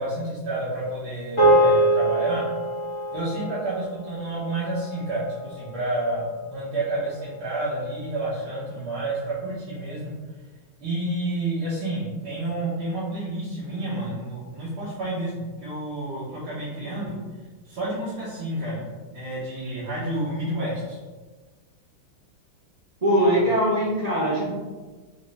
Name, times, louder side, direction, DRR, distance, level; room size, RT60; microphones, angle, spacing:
voice 1, 0.0-2.5 3.1-10.1 10.8-17.2 17.7-21.0, right 2 dB, 70° right, -10 dB, 2.1 m, -30 dB
sound 1, 1.4-5.9, right 1 dB, 15° left, 1.1 m, -24 dB
voice 2, 23.0-24.5, equal, 35° right, -6 dB, 0.6 m, -21 dB
5.5 x 2.9 x 3.3 m, 1.3 s
omnidirectional pair, 2.3 m